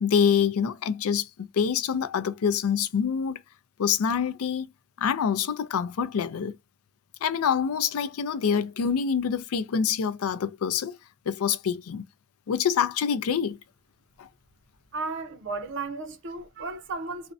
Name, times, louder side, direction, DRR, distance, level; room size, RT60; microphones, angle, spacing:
voice 1, 0.0-3.4 3.8-4.7 5.0-6.6 7.2-11.0 11.3-12.1 12.5-13.6 14.2-14.3, left 7 dB, 85° left, 0.4 m, -26 dB
voice 2, 14.9-17.3, right 3 dB, 60° right, 0.5 m, -34 dB
2.5 x 2.1 x 2.4 m
head